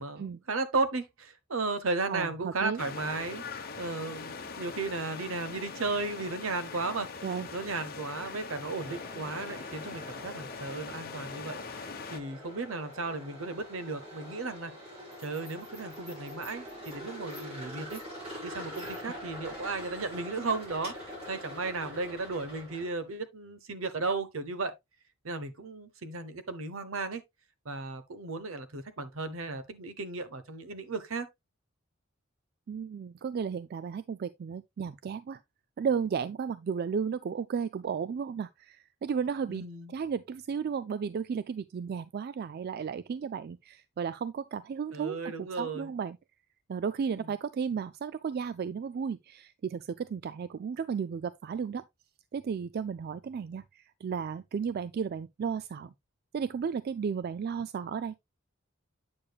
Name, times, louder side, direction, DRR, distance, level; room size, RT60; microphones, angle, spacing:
voice 1, 0.0-7.2 7.5-14.7 15.2-18.0 18.4-20.9 21.3-24.7 25.2-27.2 27.6-31.3 39.5-39.9 44.9-45.9 47.1-47.3, right 3 dB, 75° right, 1.0 m, -35 dB
voice 2, 2.1-2.8 7.2-7.5 32.7-35.4 35.8-46.2 46.7-51.8 52.3-55.9 56.3-58.2, right 6 dB, 50° right, 0.3 m, -34 dB
sound 1, 2.8-12.2, left 4 dB, 45° left, 1.0 m, -42 dB
sound 2, 8.7-23.0, equal, 30° right, 5.2 m, -44 dB
8.6 x 6.7 x 2.3 m
head